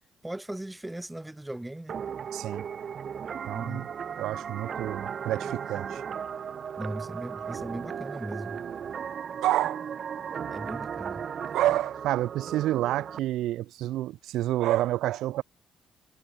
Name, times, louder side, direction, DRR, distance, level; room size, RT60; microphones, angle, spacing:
voice 1, 0.2-1.9 3.5-3.9 6.8-8.6 10.5-11.2, right 1 dB, 10° right, 4.4 m, -38 dB
sound 1, 1.9-13.2, right 7 dB, 55° right, 1.7 m, -36 dB
voice 2, 2.3-2.7 3.5-3.9 4.2-6.0 9.4-9.8 11.4-15.4, right 14 dB, 85° right, 3.3 m, -28 dB
cardioid pair, 90°, 0 cm